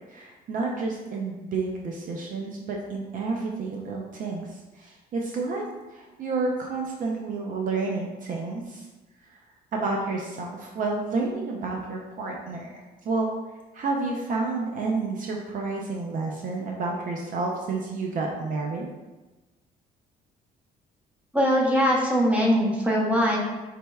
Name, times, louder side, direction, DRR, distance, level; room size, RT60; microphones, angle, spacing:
voice 1, 0.1-4.5 4.8-5.6 5.9-8.9 9.7-12.7 13.0-13.3 13.7-18.9, right 3 dB, 50° right, 0 dB, 0.5 m, -30 dB
voice 2, 21.3-23.4, equal, 10° right, -3 dB, 0.9 m, -21 dB
5.1 x 3.3 x 2.2 m, 1.2 s
cardioid pair, 110°, 17 cm